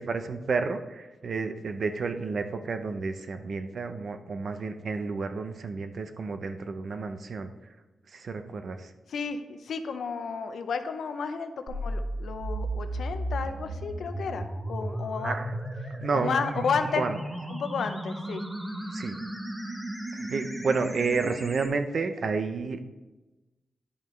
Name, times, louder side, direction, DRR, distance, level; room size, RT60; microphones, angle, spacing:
voice 1, 0.0-7.5 8.1-8.9 15.2-15.6 16.0-16.6 17.0-17.2 18.9-19.1 20.1-22.8, right 4 dB, 55° right, 8 dB, 0.6 m, -31 dB
voice 2, 9.1-15.4 16.1-17.1 17.5-18.4, left 5 dB, 80° left, 8 dB, 0.6 m, -32 dB
sound 1, 11.7-21.7, right 1 dB, 15° right, 0.9 m, -35 dB
10.5 x 5.6 x 3.2 m, 1.1 s
wide cardioid pair, 135°, 0 cm